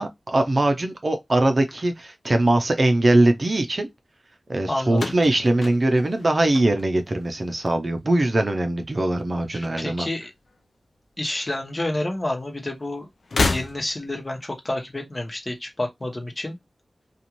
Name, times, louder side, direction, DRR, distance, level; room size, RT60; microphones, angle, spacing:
voice 1, 0.0-3.9 4.5-10.1, right 2 dB, 50° right, 0.6 m, -21 dB
voice 2, 4.7-5.1 9.5-10.3 11.2-13.1 13.5-16.6, left 1 dB, 40° left, 1.0 m, -29 dB
sound 1, 4.9-7.2 7.5-8.1 9.2-10.2 10.5-10.6 11.7-11.8 13.2-14.2, left 3 dB, 75° left, 0.4 m, -29 dB
2.6 x 2.4 x 2.9 m
cardioid pair, 40°, 0 cm